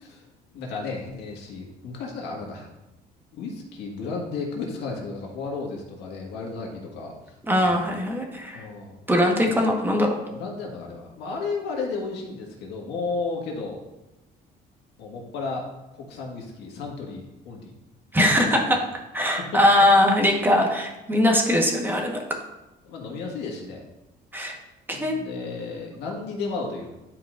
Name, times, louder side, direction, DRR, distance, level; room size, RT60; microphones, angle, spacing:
voice 1, 0.0-2.7 3.3-7.8 8.5-9.0 9.4-9.6 10.3-13.8 15.0-15.6 15.9-17.7 18.2-18.8 19.5-19.6 22.8-23.8 24.9-26.9, left 4 dB, 85° left, 0 dB, 1.7 m, -33 dB
voice 2, 7.5-8.6 9.1-10.2 18.1-18.8 19.1-22.2 24.3-24.6 24.9-25.1, left 1 dB, 10° right, 1 dB, 1.2 m, -21 dB
11.0 x 4.7 x 2.5 m, 1.0 s
cardioid pair, 110°, 17 cm